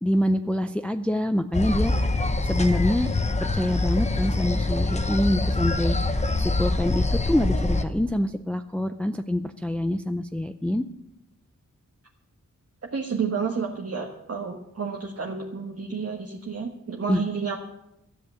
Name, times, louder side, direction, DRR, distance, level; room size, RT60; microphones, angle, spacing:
voice 1, 0.0-2.1 2.4-3.1 3.4-10.8 17.1-17.2, left 1 dB, 5° left, 8 dB, 0.4 m, -26 dB
sound 1, 1.5-7.8, left 2 dB, 20° left, 0.8 m, -24 dB
voice 2, 12.9-17.6, right 5 dB, 50° right, 0 dB, 1.3 m, -30 dB
13.5 x 8.0 x 8.2 m, 0.87 s
wide cardioid pair, 115°, 31 cm